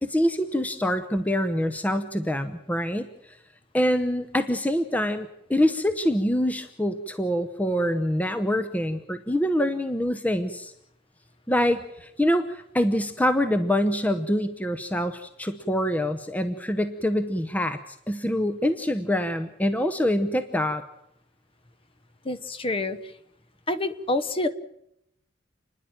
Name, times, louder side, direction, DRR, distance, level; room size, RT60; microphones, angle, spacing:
voice 1, 0.0-3.1 3.7-10.7 11.5-17.8 18.1-20.8, equal, 10° left, 10 dB, 0.8 m, -25 dB
voice 2, 22.2-23.0 23.7-24.5, left 2 dB, 30° left, 12 dB, 1.0 m, -27 dB
30.0 x 10.5 x 9.0 m, 0.80 s
head